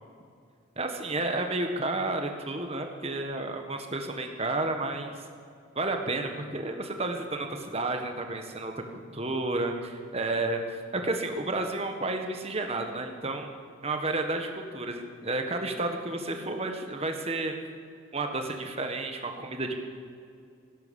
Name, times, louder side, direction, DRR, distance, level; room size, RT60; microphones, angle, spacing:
voice 1, 0.8-5.1 5.7-10.6 10.9-13.5 13.8-17.5 18.1-19.7, right 2 dB, 30° right, 4 dB, 1.5 m, -31 dB
16.5 x 12.0 x 7.2 m, 2.4 s
head